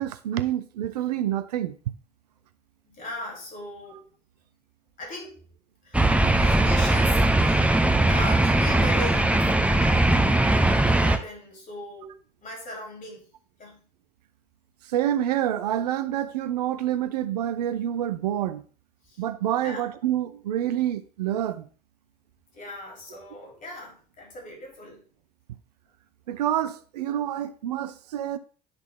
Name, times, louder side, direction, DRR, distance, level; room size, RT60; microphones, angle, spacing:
voice 1, 0.0-1.9 14.8-18.6 19.2-21.7 26.3-28.4, right 11 dB, 75° right, 0.4 m, -27 dB
voice 2, 2.9-4.0 5.0-5.3 5.8-7.7 8.1-12.1 12.4-13.3 13.6-13.8 19.0-19.2 19.6-19.9 22.5-25.1, left 1 dB, 40° left, 2.8 m, -39 dB
sound 1, 5.9-11.2, right 2 dB, 5° right, 0.7 m, -20 dB
9.6 x 3.9 x 3.5 m
figure-of-eight pair, 55°, 21 cm